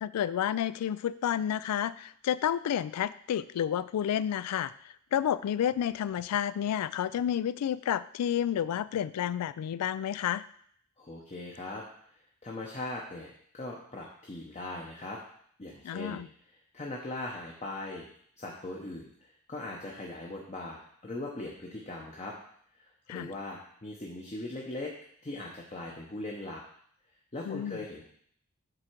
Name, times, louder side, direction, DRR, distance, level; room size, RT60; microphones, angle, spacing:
voice 1, 0.0-4.7 5.1-10.4 15.8-16.3 23.1-23.3 27.5-27.8, left 9 dB, 85° left, 17 dB, 0.3 m, -30 dB
voice 2, 11.0-11.8 12.4-15.2 15.6-16.2 16.7-18.1 18.4-22.4 22.8-24.9 25.2-26.6 27.3-28.0, left 2 dB, 30° left, -2 dB, 0.8 m, -40 dB
7.7 x 3.7 x 4.5 m, 0.63 s
head